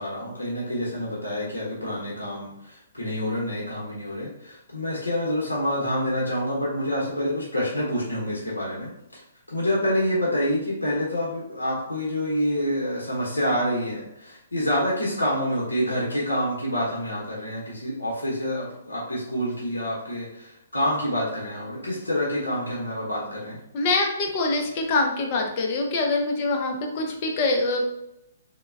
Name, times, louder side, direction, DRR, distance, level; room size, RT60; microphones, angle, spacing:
voice 1, 0.0-9.2 9.5-23.6, equal, 90° left, -5 dB, 0.7 m, -27 dB
voice 2, 23.7-27.9, left 2 dB, 40° left, 1 dB, 0.6 m, -24 dB
3.2 x 2.1 x 2.3 m, 0.83 s
figure-of-eight pair, 130°, 0 cm